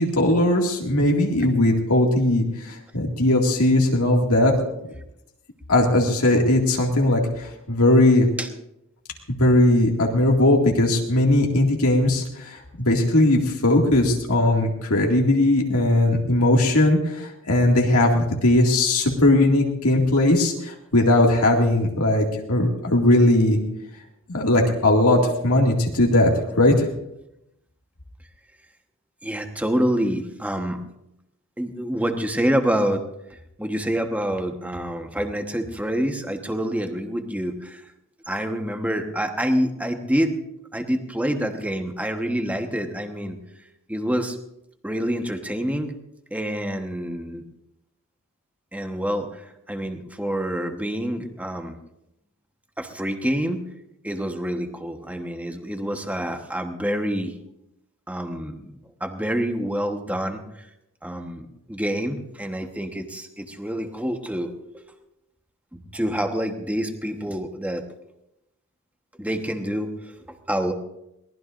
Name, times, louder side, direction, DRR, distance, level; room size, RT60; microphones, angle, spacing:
voice 1, 0.0-4.5 5.7-8.3 9.4-23.6 24.3-26.3 26.6-26.9, left 1 dB, 75° left, 0 dB, 2.2 m, -19 dB
voice 2, 29.2-30.8 31.6-33.0 33.6-37.8 38.3-40.3 40.7-43.4 43.9-44.4 44.8-46.0 46.3-47.4 48.7-51.8 52.8-53.6 54.0-57.3 58.1-60.4 61.0-64.9 65.7-67.9 69.1-69.9 70.3-70.7, equal, 5° right, 5 dB, 1.2 m, -27 dB
22.5 x 19.0 x 2.6 m, 0.85 s
head